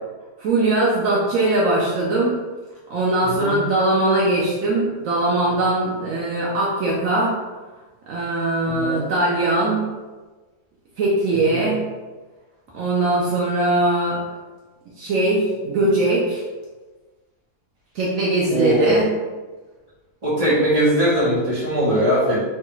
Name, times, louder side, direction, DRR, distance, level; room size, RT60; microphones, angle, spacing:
voice 1, 0.4-2.4 2.9-7.4 8.1-9.9 11.0-11.8 12.7-14.3 15.0-16.4 17.9-19.1, right 2 dB, 85° right, -5 dB, 0.7 m, -20 dB
voice 2, 3.2-3.5 8.8-9.0 11.5-11.6 18.5-19.0 20.2-22.4, equal, 30° right, -9 dB, 0.8 m, -20 dB
3.2 x 2.3 x 3.0 m, 1.3 s
omnidirectional pair, 2.0 m